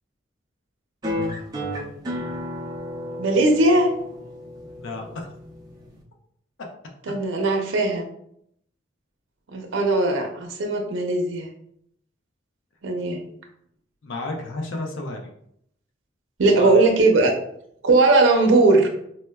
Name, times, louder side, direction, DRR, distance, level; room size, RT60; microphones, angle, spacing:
sound 1, 1.0-6.0, left 1 dB, 20° right, 0.4 m, -32 dB
voice 1, 3.2-3.9 7.1-8.0 9.5-11.5 12.8-13.2 16.4-17.3 17.8-18.9, right 2 dB, 80° right, 3 dB, 0.6 m, -19 dB
voice 2, 4.8-5.3 14.0-15.3 16.5-16.8, left 2 dB, 80° left, 2 dB, 0.5 m, -32 dB
4.2 x 2.1 x 2.2 m, 0.71 s
head